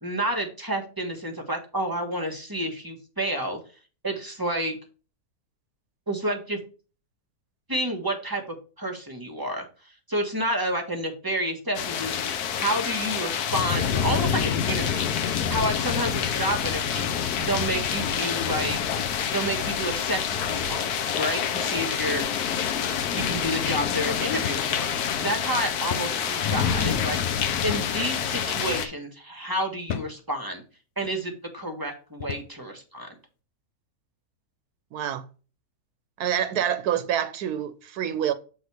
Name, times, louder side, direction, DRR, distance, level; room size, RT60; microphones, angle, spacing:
voice 1, 0.0-3.6 4.0-4.8 6.1-6.6 7.7-9.7 10.1-12.2 12.6-15.1 15.5-18.8 19.3-22.3 23.1-27.3 27.6-30.6 31.0-33.1, right 1 dB, 15° right, 1.3 m, -30 dB
sound 1, 11.7-28.9, left 7 dB, 85° left, 1.3 m, -27 dB
sound 2, 24.5-24.8 25.1-25.2 25.9-26.2 27.7-28.0 28.7-28.9 29.9-30.2 31.0-31.2 32.2-32.6, left 9 dB, 60° left, 0.8 m, -35 dB
voice 2, 34.9-35.2 36.2-38.3, right 9 dB, 85° right, 1.3 m, -27 dB
7.2 x 3.9 x 4.8 m
omnidirectional pair, 1.6 m